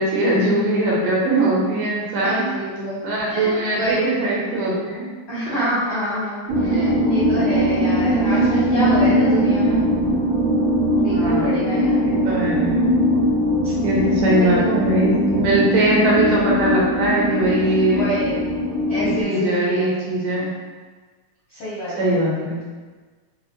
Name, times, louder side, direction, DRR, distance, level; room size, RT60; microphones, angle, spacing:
voice 1, 0.0-2.5 3.0-5.1 5.5-5.6 11.1-11.7 12.0-12.8 13.8-18.1 19.0-20.5 22.0-22.6, right 1 dB, 85° right, -5 dB, 2.6 m, -21 dB
voice 2, 2.2-3.0 3.3-4.2 5.3-9.8 11.0-12.0 13.6-13.7 14.3-14.8 17.9-18.5 18.9-19.9 21.5-22.2, equal, 75° left, -11 dB, 1.3 m, -27 dB
sound 1, 6.5-19.2, equal, 65° right, 2.3 m, -20 dB
6.0 x 2.1 x 2.9 m, 1.4 s
omnidirectional pair, 3.8 m